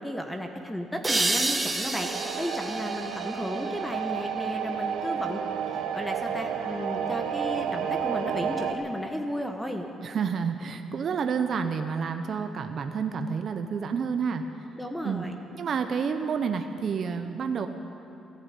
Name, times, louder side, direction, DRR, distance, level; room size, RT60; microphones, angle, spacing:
voice 1, 0.0-5.4 5.7-9.9 14.8-15.4, equal, 5° left, 4 dB, 1.1 m, -34 dB
sound 1, 1.0-4.4, right 2 dB, 20° right, 1.4 m, -30 dB
sound 2, 1.9-8.7, right 8 dB, 85° right, 1.0 m, -31 dB
voice 2, 10.0-14.4 15.0-15.2 15.5-17.7, right 6 dB, 55° right, 7 dB, 0.8 m, -29 dB
15.5 x 11.0 x 8.5 m, 2.8 s
cardioid pair, 95°, 0 cm